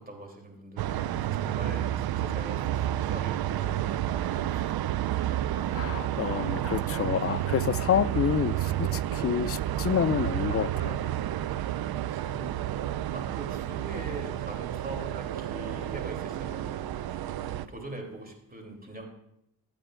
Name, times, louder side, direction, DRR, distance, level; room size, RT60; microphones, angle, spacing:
voice 1, 0.0-4.8 6.1-6.3 11.5-11.6 12.0-12.5 13.1-19.0, right 2 dB, 20° right, 1 dB, 3.1 m, -43 dB
sound 1, 0.8-17.7, right 12 dB, 55° right, 0.5 m, -30 dB
voice 2, 5.7-11.1, left 9 dB, 35° left, 18 dB, 0.4 m, -28 dB
15.0 x 8.8 x 2.5 m, 0.79 s
supercardioid pair, 55°, 45 cm